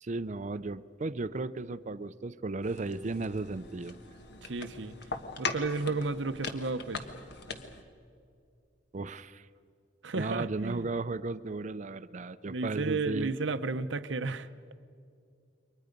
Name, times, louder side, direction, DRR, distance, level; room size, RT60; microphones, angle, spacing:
voice 1, 0.0-3.9 8.9-9.5 10.1-13.3, right 3 dB, 40° right, 0.5 m, -35 dB
sound 1, 2.6-7.8, left 3 dB, 60° left, 1.4 m, -40 dB
voice 2, 4.4-5.0 5.4-7.1 10.0-10.9 12.5-14.5, right 3 dB, 75° right, 0.8 m, -33 dB
29.0 x 23.5 x 5.3 m
head